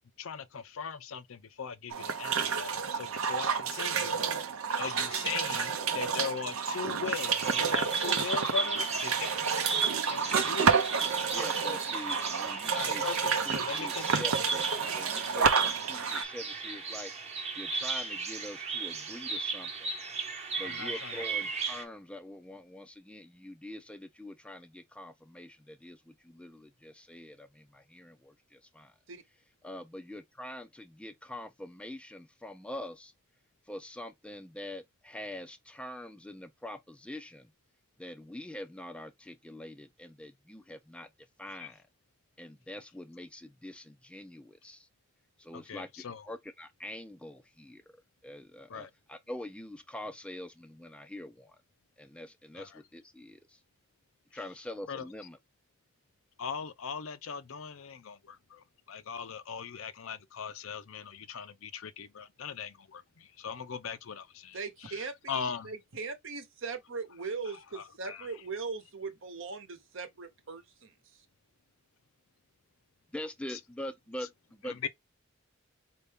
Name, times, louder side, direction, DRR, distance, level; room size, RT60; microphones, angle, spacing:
voice 1, 0.0-4.2 4.8-9.5 10.1-10.8 12.7-14.4 20.6-21.2 41.6-41.7 45.5-46.3 48.7-48.9 52.5-52.8 54.9-55.0 56.4-64.2 64.8-65.7 67.4-68.3 73.5-73.6 74.6-74.9, left 6 dB, 70° left, 0.5 m, -40 dB
sound 1, 1.9-16.2, right 6 dB, 85° right, 0.7 m, -30 dB
Bird vocalization bird call bird song, 7.1-21.8, right 4 dB, 30° right, 1.0 m, -35 dB
voice 2, 11.3-13.0 13.5-14.7 14.9-17.1 17.6-19.9 20.6-28.9 29.6-33.1 33.7-37.5 38.0-41.1 41.4-41.8 42.4-44.9 45.4-48.0 48.2-51.6 52.0-53.6 54.3-55.4 73.1-74.3 74.6-74.8, left 1 dB, 5° left, 0.4 m, -44 dB
voice 3, 64.5-71.2, right 4 dB, 65° right, 1.0 m, -40 dB
4.5 x 2.7 x 3.4 m
head